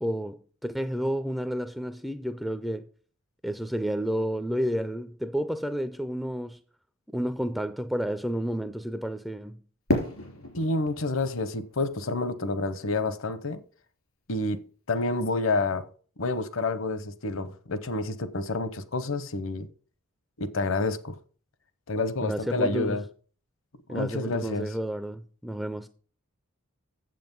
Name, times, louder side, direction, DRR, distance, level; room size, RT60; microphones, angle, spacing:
voice 1, 0.0-2.9 3.4-6.6 7.1-9.6 22.2-23.0 23.9-25.9, equal, ahead, 0.3 m, -31 dB
Fireworks, 9.9-12.9, left 1 dB, 85° left, 3.6 m, -33 dB
voice 2, 10.6-13.6 14.3-15.9 16.2-19.7 20.4-21.2 21.9-23.0 23.9-24.7, left 2 dB, 60° left, 0.8 m, -29 dB
7.8 x 7.5 x 5.3 m
head